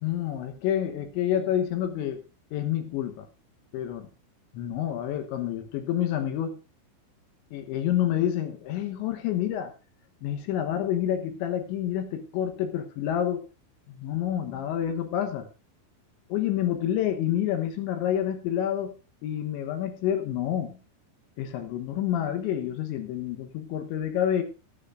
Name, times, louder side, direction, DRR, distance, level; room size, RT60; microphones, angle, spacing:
voice 1, 0.0-2.2 2.5-3.3 3.7-4.1 4.5-6.6 7.5-9.7 10.2-13.4 13.9-15.5 16.3-18.9 19.2-20.8 21.4-24.4, left 10 dB, 75° left, 6 dB, 3.2 m, -28 dB
19.0 x 8.9 x 2.5 m, 0.33 s
omnidirectional pair, 5.7 m